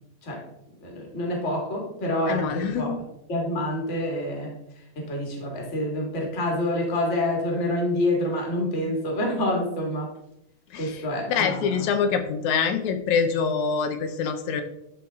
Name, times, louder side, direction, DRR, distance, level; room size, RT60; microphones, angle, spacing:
voice 1, 0.8-2.9 3.3-4.5 4.9-10.1 10.7-11.9, left 1 dB, 25° left, 0 dB, 1.8 m, -27 dB
voice 2, 2.3-3.0 10.7-14.6, left 6 dB, 75° left, 7 dB, 1.9 m, -25 dB
12.5 x 4.6 x 3.5 m, 0.82 s
omnidirectional pair, 3.7 m